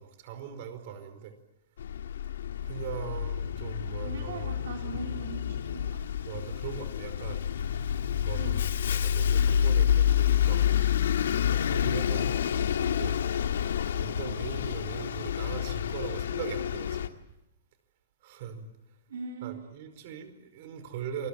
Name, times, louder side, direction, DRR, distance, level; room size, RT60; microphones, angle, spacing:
voice 1, 0.0-1.3 2.6-4.5 6.2-7.4 8.2-8.5 8.9-10.6 10.9-13.2 13.9-17.2 18.2-18.6 19.4-21.3, right 8 dB, 45° right, 10 dB, 5.0 m, -40 dB
Bus, 1.8-17.1, left 9 dB, 85° left, 1.8 m, -28 dB
voice 2, 4.0-5.4 5.7-6.0 8.4-8.6 19.1-19.7, right 5 dB, 75° right, 2 dB, 3.7 m, -40 dB
27.5 x 22.0 x 9.0 m, 0.88 s
hypercardioid pair, 165°, 0 cm